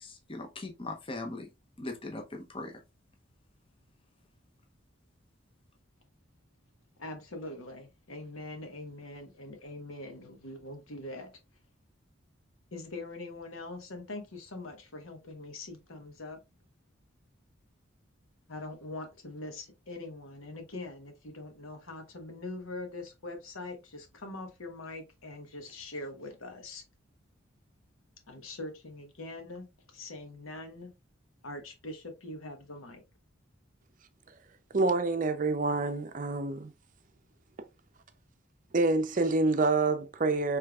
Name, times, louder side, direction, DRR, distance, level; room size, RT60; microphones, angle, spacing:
voice 1, 0.0-1.5 1.8-2.7, left 2 dB, 25° left, 0.7 m, -40 dB
voice 2, 7.0-11.3 12.7-16.4 18.5-26.8 28.3-30.9 31.4-33.0, left 2 dB, 90° left, 1.1 m, -43 dB
voice 3, 34.7-36.7 38.7-40.6, right 3 dB, 40° right, 0.5 m, -27 dB
5.0 x 3.2 x 2.3 m
head